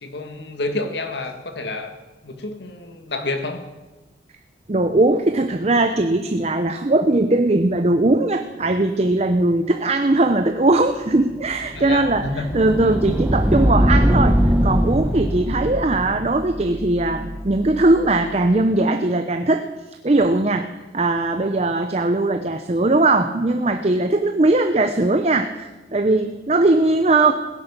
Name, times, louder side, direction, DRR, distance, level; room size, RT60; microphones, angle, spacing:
voice 1, 0.0-1.9 2.2-3.6 11.7-12.5, left 2 dB, 75° left, 6 dB, 1.7 m, -29 dB
voice 2, 4.7-19.7 20.0-20.7 20.9-27.3, right 2 dB, 35° right, 8 dB, 0.6 m, -19 dB
sound 1, 11.2-18.0, equal, 5° right, 0.9 m, -22 dB
17.0 x 10.5 x 6.8 m, 1.2 s
head